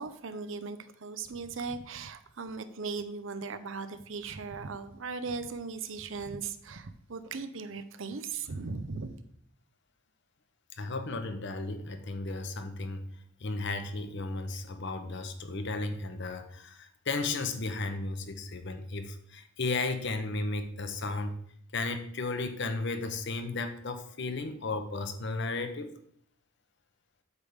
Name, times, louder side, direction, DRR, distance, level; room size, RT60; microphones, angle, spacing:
voice 1, 0.0-9.2, right 4 dB, 60° right, 10 dB, 0.6 m, -38 dB
voice 2, 10.8-13.0 13.4-21.3 21.7-25.9, left 3 dB, 55° left, 7 dB, 0.8 m, -34 dB
8.2 x 3.5 x 6.6 m, 0.67 s
head